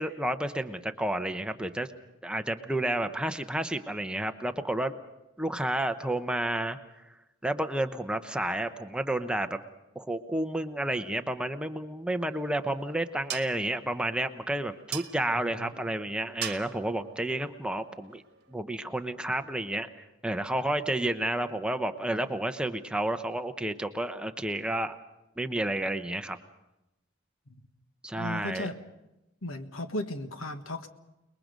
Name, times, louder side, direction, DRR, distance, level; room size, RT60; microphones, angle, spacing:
voice 1, 0.0-1.9 2.2-4.9 5.4-6.8 7.4-9.6 9.9-18.2 18.5-19.9 20.2-25.0 25.4-26.4 28.0-28.7, right 1 dB, 5° right, 7 dB, 0.8 m, -31 dB
sound 1, 12.1-18.5, right 10 dB, 55° right, 1.6 m, -43 dB
voice 2, 15.4-15.7 27.5-27.6 28.1-28.7 29.4-30.9, left 1 dB, 80° left, 7 dB, 1.6 m, -35 dB
29.5 x 21.0 x 5.2 m, 0.93 s
head